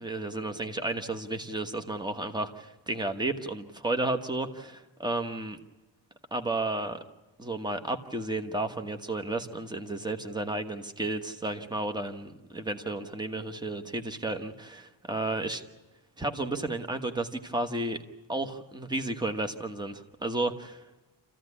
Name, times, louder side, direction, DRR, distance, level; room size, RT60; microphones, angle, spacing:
voice 1, 0.0-4.5 5.0-5.6 6.3-7.0 7.4-15.6 16.2-18.0 18.3-20.8, right 2 dB, 10° right, 7 dB, 1.3 m, -32 dB
27.5 x 15.0 x 9.8 m, 1.1 s
wide cardioid pair, 140°, 45 cm